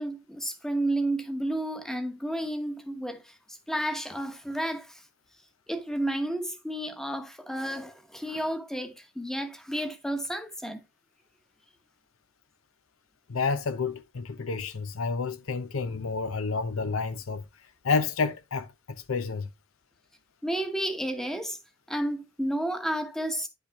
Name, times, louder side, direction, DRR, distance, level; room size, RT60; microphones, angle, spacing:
voice 1, 0.0-5.0 5.7-10.8 20.4-21.6 21.9-23.5, right 1 dB, ahead, 1.0 m, -31 dB
voice 2, 13.3-17.4 17.8-18.7 19.1-19.5, left 4 dB, 85° left, 0.7 m, -29 dB
10.0 x 5.6 x 3.5 m
head